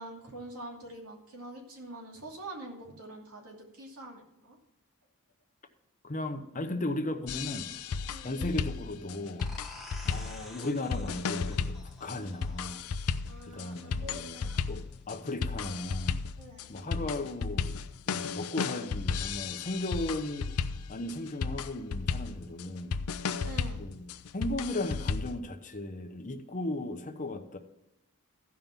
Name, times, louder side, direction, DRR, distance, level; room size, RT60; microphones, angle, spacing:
voice 1, 0.0-4.6 8.1-8.4 13.3-14.6 16.4-16.7 23.4-23.8, right 1 dB, 80° right, 0 dB, 2.6 m, -45 dB
voice 2, 6.0-7.7 8.2-9.5 10.0-12.8 13.4-14.4 14.7-16.2 16.7-17.8 18.1-20.5 20.9-23.0 23.8-27.6, left 1 dB, 35° left, 6 dB, 0.9 m, -36 dB
sound 1, 7.3-25.4, left 5 dB, 85° left, 0.5 m, -34 dB
sound 2, 9.4-14.8, left 2 dB, ahead, 1.3 m, -50 dB
14.5 x 5.4 x 5.8 m, 0.88 s
head